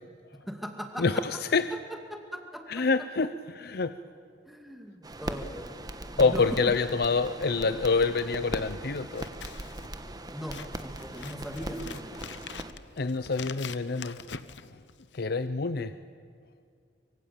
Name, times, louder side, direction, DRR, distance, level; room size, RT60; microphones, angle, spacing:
voice 1, 0.5-1.2 1.7-2.9 4.5-5.7 6.1-6.6 10.3-12.2, equal, ahead, 4 dB, 2.5 m, -39 dB
voice 2, 1.0-1.7 2.7-3.9 6.2-9.3 13.0-14.2 15.1-15.9, left 4 dB, 60° left, 12 dB, 0.7 m, -26 dB
sound 1, 5.0-12.7, right 1 dB, 20° right, 1.3 m, -40 dB
Scissors, 9.1-15.3, left 6 dB, 85° left, 0.9 m, -44 dB
25.0 x 24.0 x 8.7 m, 2.3 s
head